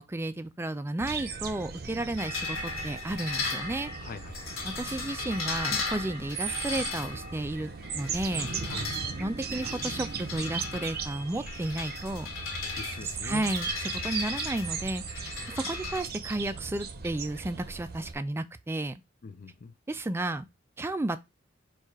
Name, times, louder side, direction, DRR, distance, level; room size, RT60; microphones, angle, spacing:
voice 1, 0.0-3.9 4.6-8.5 9.2-12.3 13.0-19.0 19.9-20.5 20.8-21.2, right 2 dB, 10° right, 0.3 m, -33 dB
sound 1, 1.0-18.1, right 5 dB, 50° right, 0.7 m, -38 dB
sound 2, 2.2-16.0, left 4 dB, 75° left, 1.5 m, -37 dB
voice 2, 4.0-4.5 8.7-9.0 12.6-13.5 19.2-19.7, left 4 dB, 45° left, 0.5 m, -43 dB
4.5 x 2.4 x 4.7 m
head